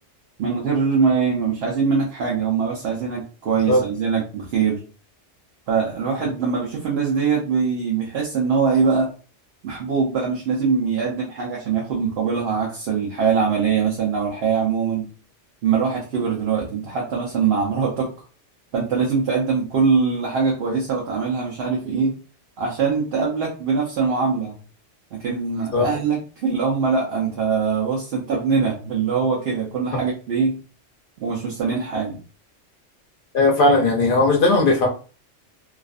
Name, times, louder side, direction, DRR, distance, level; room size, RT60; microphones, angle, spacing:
voice 1, 0.4-4.8 5.7-9.1 9.6-15.1 15.6-18.1 18.7-22.2 22.6-24.6 25.1-30.6 31.2-32.2, right 5 dB, 65° right, -2 dB, 0.8 m, -22 dB
voice 2, 33.3-34.9, left 2 dB, 60° left, 1 dB, 0.6 m, -17 dB
2.4 x 2.4 x 2.4 m, 0.37 s
omnidirectional pair, 1.2 m